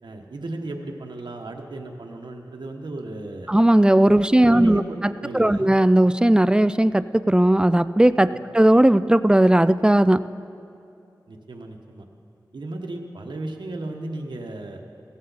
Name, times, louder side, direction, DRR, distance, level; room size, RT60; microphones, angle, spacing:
voice 1, 0.0-3.5 4.4-5.7 8.2-8.4 11.3-12.1 12.5-14.8, right 2 dB, 90° right, 2 dB, 1.2 m, -35 dB
voice 2, 3.5-8.3 8.5-10.2, right 1 dB, 10° right, 14 dB, 0.3 m, -17 dB
15.5 x 14.0 x 4.1 m, 2.7 s
wide cardioid pair, 85°, 8 cm